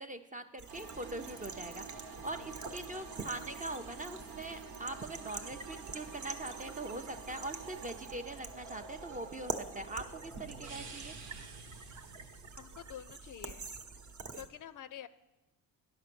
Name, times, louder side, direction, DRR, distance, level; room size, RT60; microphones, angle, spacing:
voice 1, 0.0-11.1, right 2 dB, 20° right, 7 dB, 0.5 m, -42 dB
sound 1, 0.6-14.5, right 4 dB, 45° right, 0.9 m, -46 dB
sound 2, 0.7-12.9, right 4 dB, 85° right, 1.2 m, -49 dB
voice 2, 12.6-13.7 14.3-15.1, left 10 dB, 50° left, 14 dB, 0.5 m, -47 dB
10.0 x 5.2 x 6.8 m, 1.0 s
cardioid pair, 85°, 42 cm